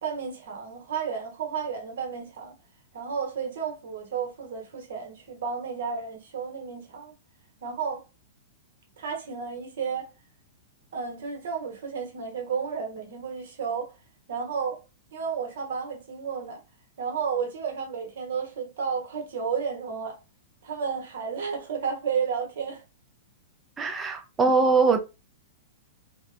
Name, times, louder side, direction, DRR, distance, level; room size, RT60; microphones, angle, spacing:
voice 1, 0.0-2.5 2.9-7.1 7.6-8.0 9.0-10.1 10.9-13.9 14.3-14.8 15.1-16.6 17.0-20.2 20.6-22.8, right 6 dB, 70° right, 1.1 m, -32 dB
voice 2, 23.8-25.0, right 4 dB, 20° right, 0.5 m, -22 dB
2.8 x 2.2 x 2.5 m
hypercardioid pair, 125°, 0 cm